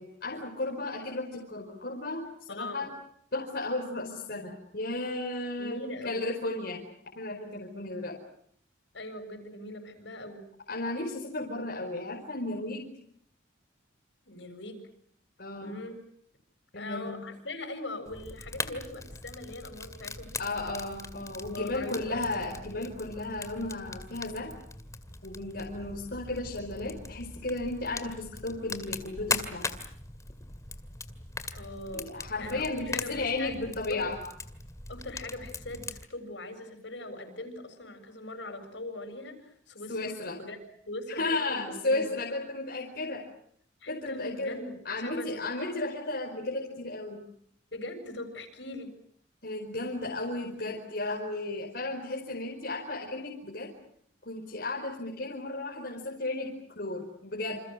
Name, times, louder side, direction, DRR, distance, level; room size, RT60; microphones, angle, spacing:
voice 1, 0.0-2.9 3.3-6.8 7.1-8.2 10.7-12.9 15.4-15.8 16.7-17.2 20.4-24.5 25.2-29.7 31.9-34.2 39.9-40.4 41.1-43.2 43.9-44.6 44.8-47.2 49.4-53.7 54.2-57.6, left 2 dB, 55° left, -1 dB, 4.9 m, -34 dB
voice 2, 2.5-2.9 5.6-6.2 8.9-10.5 14.3-14.8 15.6-16.0 16.7-20.6 21.5-22.3 31.5-34.0 34.9-40.0 40.4-40.6 40.9-42.1 43.8-45.5 47.7-48.9, left 2 dB, 70° left, 7 dB, 7.3 m, -41 dB
Fire, 18.1-36.0, left 3 dB, 15° left, 2.2 m, -40 dB
28.5 x 28.0 x 6.4 m, 0.66 s
head